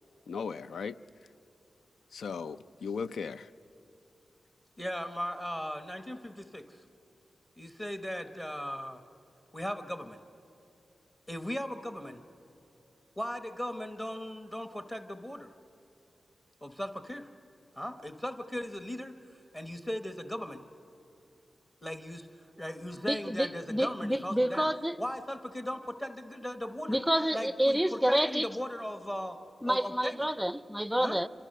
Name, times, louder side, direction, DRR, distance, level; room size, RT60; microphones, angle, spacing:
voice 1, 0.3-1.0 2.1-3.5, left 5 dB, 85° left, 0.5 m, -37 dB
voice 2, 4.8-6.8 7.6-9.0 9.5-10.2 11.3-12.2 13.2-15.5 16.6-17.3 17.8-20.6 21.8-24.7 25.0-27.0 27.3-29.4 29.7-30.2 31.0-31.2, equal, 20° left, 1.1 m, -38 dB
voice 3, 23.1-25.0 26.9-28.5 29.6-31.3, equal, 5° right, 0.5 m, -28 dB
27.0 x 26.0 x 6.6 m
wide cardioid pair, 95°, 0 cm